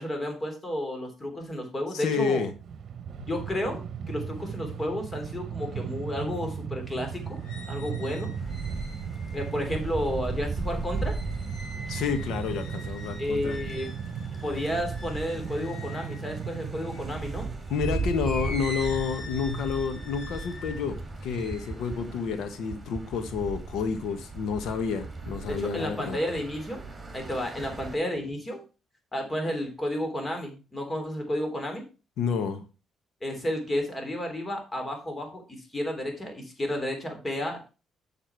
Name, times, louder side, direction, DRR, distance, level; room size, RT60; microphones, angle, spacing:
voice 1, 0.0-2.4 3.3-7.4 7.7-8.3 9.3-11.1 13.2-13.9 14.4-17.5 25.5-26.8 27.1-28.6 29.1-31.8 33.2-37.7, left 1 dB, 25° left, 4 dB, 3.4 m, -32 dB
voice 2, 1.9-2.5 3.2-3.3 11.9-13.6 17.7-26.2 32.2-32.7, left 6 dB, 80° left, 9 dB, 1.4 m, -30 dB
Train, 2.4-17.6, right 7 dB, 60° right, 1.0 m, -37 dB
sound 1, 7.0-17.1 17.7-23.2 23.6-24.2, left 2 dB, 55° left, 3.9 m, -45 dB
sound 2, 8.3-28.0, right 3 dB, 25° right, 3.1 m, -37 dB
7.3 x 7.0 x 4.6 m, 0.32 s
cardioid pair, 90°, 0 cm